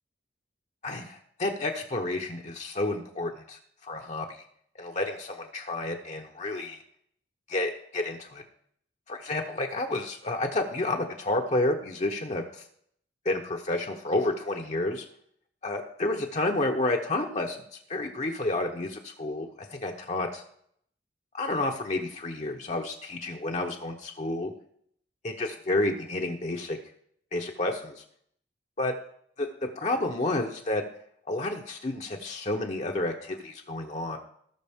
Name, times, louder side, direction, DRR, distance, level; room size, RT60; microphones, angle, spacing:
voice 1, 0.8-4.3 4.8-6.8 7.5-8.4 9.1-12.4 13.2-15.0 15.6-17.6 17.9-20.4 21.4-24.5 25.2-26.8 27.3-28.0 28.8-28.9 29.4-30.8 31.3-34.2, left 2 dB, 35° left, 1 dB, 0.9 m, -30 dB
18.0 x 6.0 x 3.6 m, 0.66 s
head